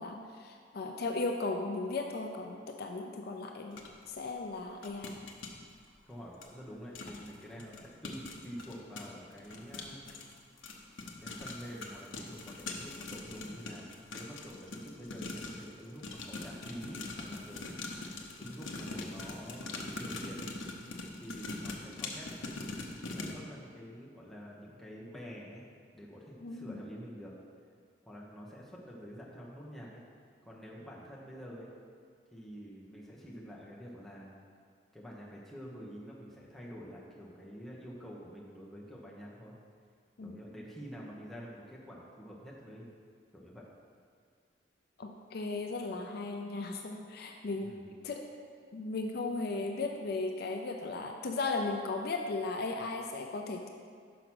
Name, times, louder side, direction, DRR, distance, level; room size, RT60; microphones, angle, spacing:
voice 1, 0.0-3.8 4.1-5.2 26.4-26.8 40.2-40.4 45.0-47.7 48.0-48.2 48.7-53.7, left 3 dB, 55° left, 3 dB, 0.5 m, -36 dB
sound 1, 3.8-3.9 4.8-5.5 6.4-6.5 6.9-7.3 7.6-15.7 16.0-23.3, left 3 dB, 85° left, 0.8 m, -42 dB
voice 2, 6.1-10.2 11.2-17.7 18.0-20.5 21.1-22.3 23.1-25.6 25.9-27.3 28.1-30.0 30.4-31.7 32.3-34.3 34.9-39.6 40.2-42.9 43.3-43.7 47.6-47.9, equal, ahead, -6 dB, 1.1 m, -47 dB
6.0 x 5.0 x 6.1 m, 2.1 s
head